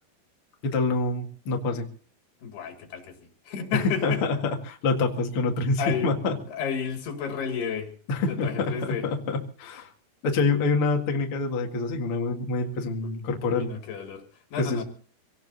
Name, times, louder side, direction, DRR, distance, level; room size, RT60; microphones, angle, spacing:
voice 1, 0.6-1.9 3.7-6.3 8.1-9.9 10.2-13.7 14.6-14.8, left 3 dB, 45° left, 2 dB, 2.3 m, -26 dB
voice 2, 2.4-4.2 5.8-6.1 6.5-7.9 8.3-9.1 13.0-13.1 13.5-14.8, left 7 dB, 85° left, 5 dB, 4.3 m, -32 dB
26.0 x 18.0 x 2.7 m, 0.43 s
omnidirectional pair, 4.5 m